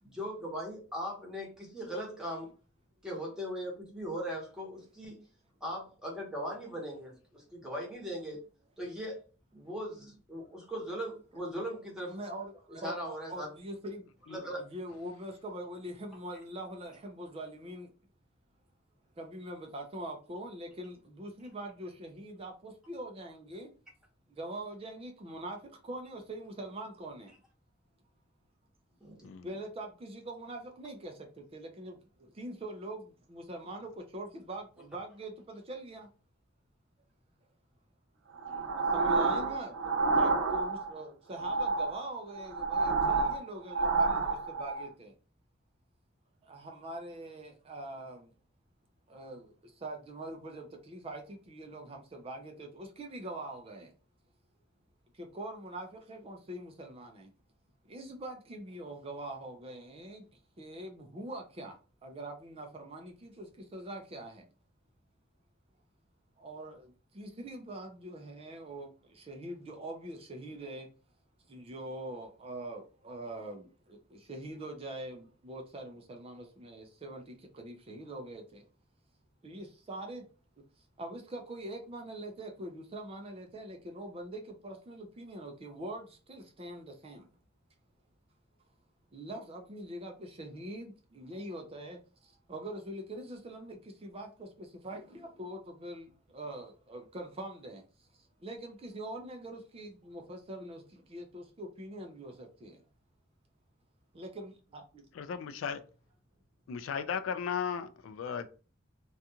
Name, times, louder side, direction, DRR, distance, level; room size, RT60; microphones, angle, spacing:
voice 1, 0.0-2.5 3.0-5.2 5.6-8.4 8.8-9.2 9.5-12.2 12.8-13.5 14.3-14.6 29.0-29.3, equal, 5° right, 1.0 m, -39 dB
voice 2, 12.1-14.0 14.6-17.9 19.2-23.7 24.4-25.6 25.8-27.3 29.4-31.1 31.5-36.1 38.9-45.1 46.4-48.3 49.1-49.5 49.8-53.9 55.2-57.3 57.9-60.2 60.6-61.7 62.0-64.4 66.4-70.9 71.5-78.6 79.4-80.2 81.0-87.2 89.1-92.0 92.5-97.8 98.4-102.8 104.1-105.0, right 1 dB, 30° right, 0.4 m, -43 dB
sound 1, 38.4-41.0 41.3-44.9, right 4 dB, 80° right, 0.5 m, -29 dB
voice 3, 105.1-105.8 106.7-108.5, left 7 dB, 80° left, 0.3 m, -36 dB
2.5 x 2.3 x 2.8 m
head